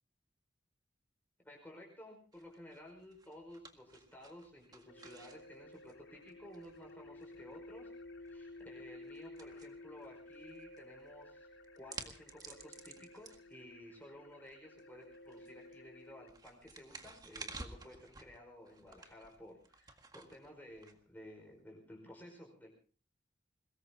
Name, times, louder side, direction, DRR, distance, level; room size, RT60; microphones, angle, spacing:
voice 1, 1.4-11.5 11.8-22.7, left 1 dB, 10° left, 0 dB, 5.2 m, -54 dB
sound 1, 2.3-21.6, right 3 dB, 20° right, 1.8 m, -55 dB
sound 2, 4.9-16.3, left 2 dB, 85° left, 2.1 m, -54 dB
22.5 x 21.0 x 2.9 m, 0.41 s
head